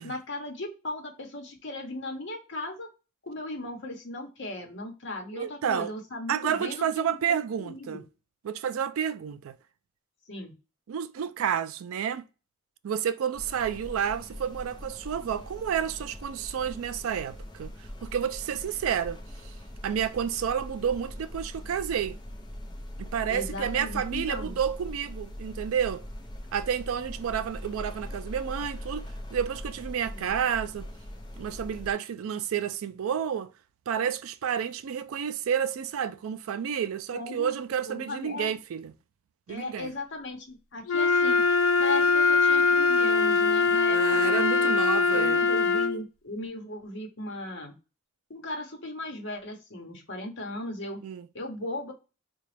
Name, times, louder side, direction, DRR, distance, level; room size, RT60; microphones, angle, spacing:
voice 1, 0.0-2.9 3.2-8.0 10.3-10.5 23.3-24.6 30.1-30.3 37.1-37.6 37.9-38.5 39.5-41.4 41.8-44.7 45.1-47.8 48.3-51.0 51.3-51.9, left 1 dB, 55° left, 1.0 m, -37 dB
voice 2, 5.3-5.9 6.3-8.0 8.4-9.6 10.9-12.3 12.8-17.7 18.0-19.5 19.8-22.2 23.0-26.1 26.5-30.9 31.4-33.5 33.9-38.9 39.5-39.9 43.9-45.4 51.0-51.3, right 8 dB, 80° right, 0.3 m, -30 dB
sound 1, 13.3-31.9, left 1 dB, 20° left, 0.5 m, -41 dB
Wind instrument woodwind instrument, 40.9-46.0, left 4 dB, 75° left, 0.4 m, -22 dB
3.9 x 2.3 x 3.2 m
head